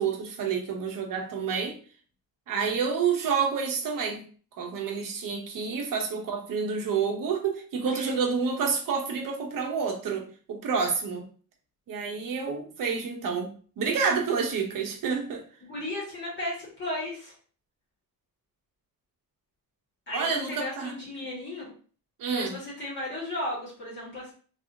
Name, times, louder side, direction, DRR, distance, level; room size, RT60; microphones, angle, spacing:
voice 1, 0.0-1.8 2.5-4.2 4.6-11.2 11.9-15.4 20.1-20.9 22.2-22.5, right 5 dB, 60° right, 3 dB, 0.9 m, -29 dB
voice 2, 15.7-17.3 20.1-21.6 22.3-24.3, left 1 dB, 30° left, -7 dB, 1.8 m, -35 dB
3.3 x 3.3 x 2.7 m, 0.41 s
wide cardioid pair, 180°, 37 cm